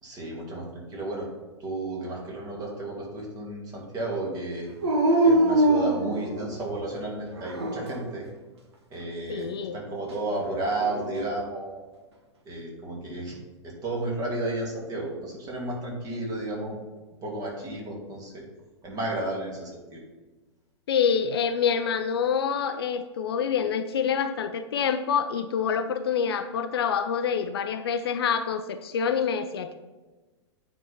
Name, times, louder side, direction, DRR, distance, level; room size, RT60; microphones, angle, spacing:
voice 1, 0.0-1.3 1.6-4.7 5.2-8.3 8.9-11.9 12.4-13.4 13.6-16.8 17.2-18.4 18.8-20.0, right 2 dB, 25° right, -2 dB, 2.5 m, -33 dB
Dog, 4.8-6.7 7.4-8.2 10.4-11.3, right 1 dB, 65° right, 1.5 m, -24 dB
voice 2, 9.3-9.8 20.9-29.7, left 7 dB, 55° left, 9 dB, 0.6 m, -26 dB
8.9 x 4.6 x 5.5 m, 1.2 s
figure-of-eight pair, 105°, 15 cm